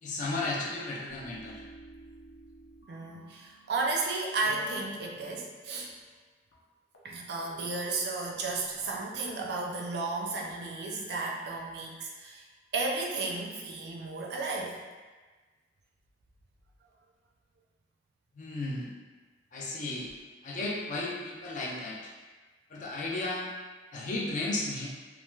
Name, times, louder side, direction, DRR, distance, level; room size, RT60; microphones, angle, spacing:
voice 1, 0.0-1.6 18.3-18.9 19.5-20.1 20.4-22.1 22.7-23.5 23.9-24.9, left 2 dB, 45° left, -2 dB, 0.4 m, -34 dB
sound 1, 1.1-4.0 4.4-6.3 6.5-6.6 6.9-7.1 7.4-7.6 7.8-9.5 10.3-11.9 12.6-13.5, equal, 85° left, 0.6 m, -53 dB
voice 2, 2.9-5.9 7.0-12.4 12.7-14.8, right 3 dB, 60° right, -1 dB, 0.4 m, -33 dB
3.2 x 2.4 x 2.2 m, 1.3 s
head